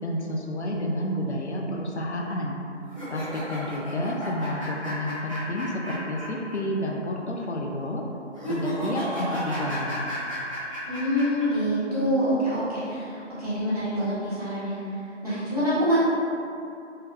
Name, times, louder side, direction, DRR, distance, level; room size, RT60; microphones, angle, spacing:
voice 1, 0.0-2.6 3.1-8.0 8.5-10.1, left 1 dB, 65° left, 0 dB, 0.5 m, -30 dB
sound 1, 2.9-6.6 6.8-6.9 8.3-11.4, equal, 25° left, 0.8 m, -33 dB
voice 2, 10.9-14.8 15.2-16.0, equal, 30° right, -14 dB, 1.4 m, -26 dB
3.7 x 2.7 x 3.3 m, 2.7 s
figure-of-eight pair, 180°, 37 cm